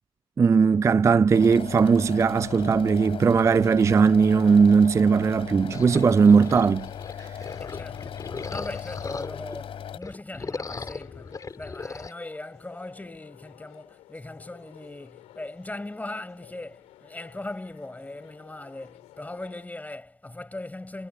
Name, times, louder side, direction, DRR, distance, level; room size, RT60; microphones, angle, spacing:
voice 1, 0.4-6.9, right 5 dB, 25° right, 0.4 m, -19 dB
sound 1, 1.3-10.0, left 9 dB, 55° left, 3.3 m, -38 dB
sound 2, 5.7-9.6 9.9-12.1, left 4 dB, 30° left, 4.7 m, -38 dB
voice 2, 7.6-21.1, left 2 dB, 15° left, 5.7 m, -39 dB
sound 3, 10.6-19.7, left 15 dB, 75° left, 3.0 m, -53 dB
supercardioid pair, 65°, 11 cm